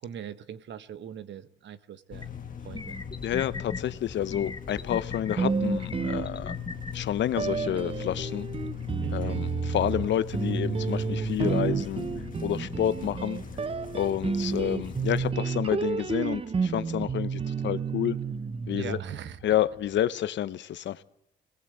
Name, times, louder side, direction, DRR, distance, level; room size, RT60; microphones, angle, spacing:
voice 1, 0.0-2.3 2.6-3.0 9.0-9.5 12.7-13.2 18.7-19.4, right 8 dB, 65° right, 1.1 m, -41 dB
sound 1, 2.1-15.3, left 8 dB, 45° left, 1.8 m, -40 dB
sound 2, 2.2-2.3 2.7-3.8 4.3-5.4 5.9-6.9, left 3 dB, 20° left, 1.2 m, -38 dB
voice 2, 3.2-6.5 6.9-8.5 9.1-12.1 12.4-13.4 13.9-18.2 18.7-19.0 19.4-21.0, left 11 dB, 65° left, 0.9 m, -29 dB
sound 3, 5.4-6.8 7.4-19.6, right 5 dB, 30° right, 0.7 m, -31 dB
21.5 x 19.0 x 7.9 m
cardioid pair, 90°, 20 cm